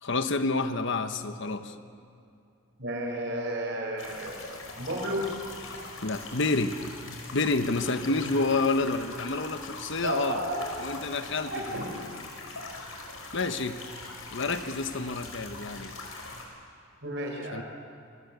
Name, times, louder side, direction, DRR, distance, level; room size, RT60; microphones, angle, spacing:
voice 1, 0.0-1.7 6.0-6.8 7.3-10.4 10.8-11.8 13.3-13.8 14.3-15.9 17.5-17.6, left 3 dB, 60° left, 9 dB, 1.3 m, -29 dB
voice 2, 2.8-4.4 4.7-5.3 10.0-11.0 11.5-12.0 17.0-17.6, right 1 dB, 55° right, 0 dB, 6.2 m, -32 dB
sound 1, 4.0-16.4, left 3 dB, 80° left, 5.2 m, -42 dB
26.5 x 23.0 x 8.2 m, 2.5 s
head